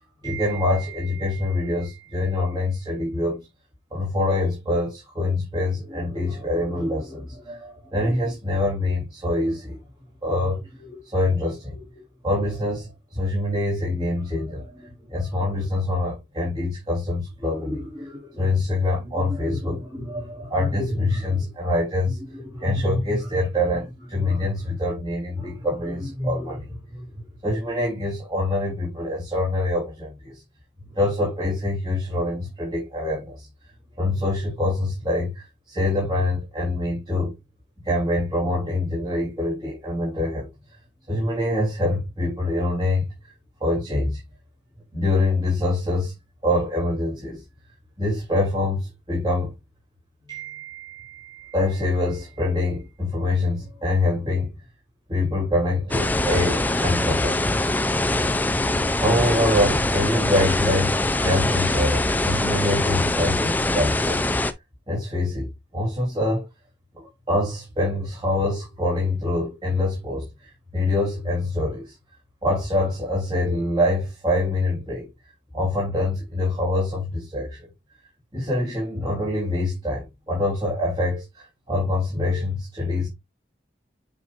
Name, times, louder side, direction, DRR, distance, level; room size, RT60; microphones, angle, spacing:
voice 1, 0.2-3.4 3.9-9.8 10.2-11.8 12.2-27.0 27.4-30.4 30.9-33.5 34.0-37.3 37.8-40.5 41.1-43.1 43.6-44.2 44.9-46.2 46.4-47.4 48.0-49.5 50.3-54.6 55.1-57.4 58.9-64.2 64.9-65.5 65.7-66.5 66.9-71.9 72.4-75.1 75.5-77.6 78.3-83.1, left 1 dB, 25° right, 3.4 m, -25 dB
sound 1, 55.9-64.5, left 2 dB, 10° left, 0.4 m, -23 dB
8.3 x 5.2 x 2.5 m
head